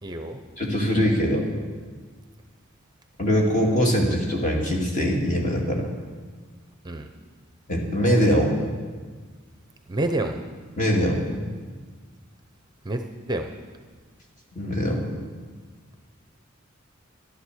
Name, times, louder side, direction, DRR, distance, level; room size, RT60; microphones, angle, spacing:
voice 1, 0.0-0.4 6.8-7.1 9.9-10.4 12.8-13.5, right 1 dB, 20° right, 6 dB, 0.6 m, -28 dB
voice 2, 0.6-1.4 3.2-5.9 7.7-8.6 10.8-11.3 14.5-15.0, equal, 40° left, -1 dB, 2.3 m, -22 dB
12.0 x 11.0 x 6.4 m, 1.5 s
head